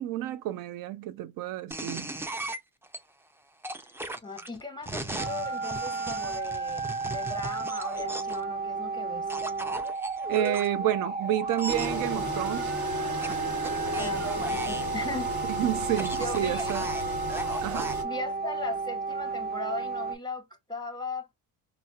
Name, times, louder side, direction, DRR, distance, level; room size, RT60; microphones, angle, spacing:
voice 1, 0.0-2.1 10.3-12.7 15.5-16.9 17.6-17.9, right 12 dB, 70° right, 0.5 m, -30 dB
sound 1, 1.7-3.0 3.6-8.4 9.3-10.7 11.5-12.0 13.2-14.9 15.8-18.0, right 2 dB, 5° right, 0.3 m, -37 dB
voice 2, 4.2-9.3 14.0-15.3 16.2-16.7 18.0-21.3, left 3 dB, 10° left, 0.8 m, -38 dB
sound 2, 5.2-20.1, right 4 dB, 25° right, 0.7 m, -33 dB
Engine, 11.7-18.0, right 1 dB, 50° right, 1.2 m, -35 dB
4.1 x 2.0 x 2.3 m
cardioid pair, 90°, 36 cm